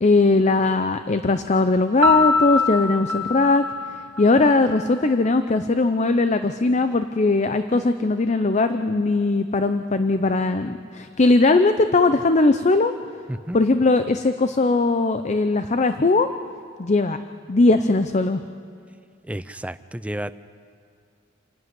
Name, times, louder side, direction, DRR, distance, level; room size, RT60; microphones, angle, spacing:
voice 1, 0.0-3.6 4.2-12.9 13.5-16.3 16.8-17.2 17.5-18.4, left 3 dB, 35° left, 9 dB, 0.6 m, -19 dB
Piano, 2.0-4.8, left 4 dB, 65° right, 1.0 m, -24 dB
voice 2, 19.2-20.3, right 1 dB, 5° right, 14 dB, 0.4 m, -31 dB
27.0 x 11.0 x 9.5 m, 2.3 s
head